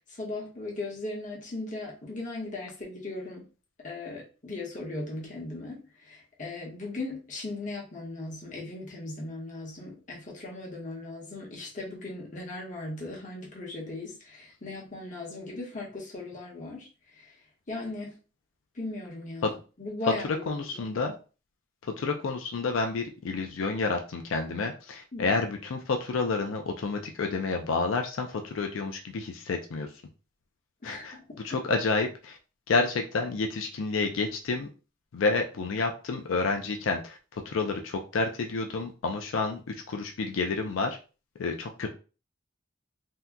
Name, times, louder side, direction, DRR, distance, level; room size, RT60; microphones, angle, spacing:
voice 1, 0.1-3.4 3.8-17.3 17.7-18.1 18.7-20.8 25.1-25.4 30.8-31.5, left 2 dB, 40° left, 1.0 m, -38 dB
voice 2, 20.2-21.2 21.8-29.9 30.8-31.2 31.4-32.4 32.7-34.7 35.1-41.0 41.4-41.9, left 3 dB, 90° left, 0.4 m, -29 dB
2.8 x 2.2 x 3.5 m
head